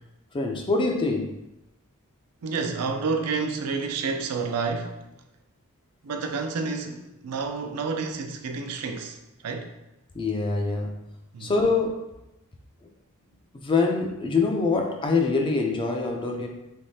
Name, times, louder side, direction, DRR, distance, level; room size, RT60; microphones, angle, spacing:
voice 1, 0.3-1.3 10.1-11.0 11.4-12.0 13.6-16.5, left 3 dB, 25° left, 0.4 m, -24 dB
voice 2, 2.4-5.0 6.0-9.2 9.4-9.7 11.3-11.5, right 4 dB, 85° right, 0.4 m, -29 dB
3.5 x 3.0 x 2.7 m
head